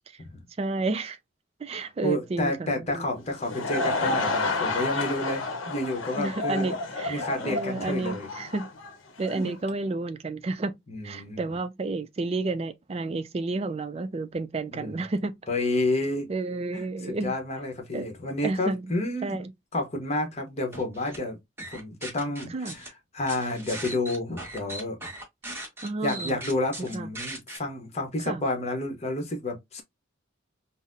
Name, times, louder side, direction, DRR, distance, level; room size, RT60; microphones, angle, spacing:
voice 1, 0.6-1.2 1.6-3.1 6.2-8.7 9.2-10.7 11.0-15.3 16.3-17.3 17.9-18.1 18.4-18.9 19.2-19.5 22.5-22.7 25.4-26.4 26.9-27.1 28.2-28.4, right 3 dB, 30° right, 0.3 m, -31 dB
voice 2, 1.7-6.7 7.1-8.3 9.3-9.5 10.9-11.4 14.7-15.0 15.5-16.3 16.7-19.4 19.7-21.4 21.7-25.0 26.0-29.8, left 2 dB, 35° left, 0.9 m, -30 dB
Laughter / Crowd, 3.2-9.5, left 3 dB, 70° left, 0.8 m, -30 dB
sound 1, 20.7-21.2 21.6-22.9 23.3-27.6, right 1 dB, 10° right, 1.0 m, -38 dB
3.9 x 2.0 x 2.5 m
head